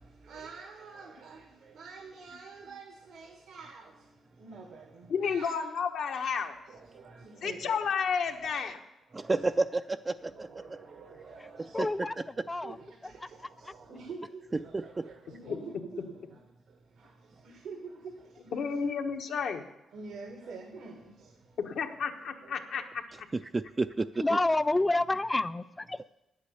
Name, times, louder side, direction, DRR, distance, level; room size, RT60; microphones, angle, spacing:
voice 1, 0.2-3.9 4.4-5.7 6.7-7.7 8.4-8.5 9.1-9.7 10.2-12.0 12.6-16.4 17.0-17.1 17.4-18.1 18.4-18.8 19.9-21.3 22.4-22.5, right 4 dB, 85° right, 1.6 m, -47 dB
voice 2, 5.1-6.6 7.4-8.7 15.4-15.6 18.5-19.6 21.6-23.0, left 6 dB, 75° left, 1.2 m, -31 dB
voice 3, 9.1-10.5 11.8-12.1 12.4-12.5 14.7-15.0 23.5-24.4, right 3 dB, 30° right, 0.4 m, -30 dB
voice 4, 11.7-12.8 24.2-26.0, left 2 dB, 20° left, 0.5 m, -28 dB
9.8 x 8.4 x 8.1 m
cardioid pair, 65°, 0 cm